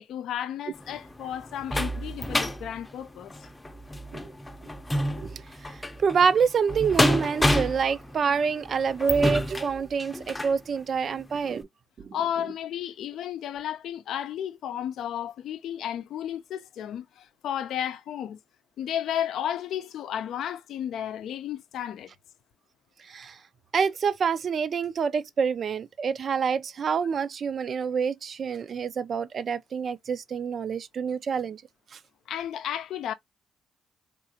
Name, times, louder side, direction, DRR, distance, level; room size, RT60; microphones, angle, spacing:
voice 1, 0.0-3.3 12.1-18.4 18.8-22.1 32.3-33.1, left 10 dB, 75° left, 0.5 m, -33 dB
sound 1, 0.8-10.6 11.2-11.3 11.6-11.7, left 1 dB, 15° left, 0.6 m, -29 dB
voice 2, 5.7-11.7 12.0-12.2 23.0-23.4 23.7-31.6 31.9-32.0, right 6 dB, 50° right, 0.4 m, -27 dB
3.7 x 2.4 x 2.7 m
cardioid pair, 90°, 0 cm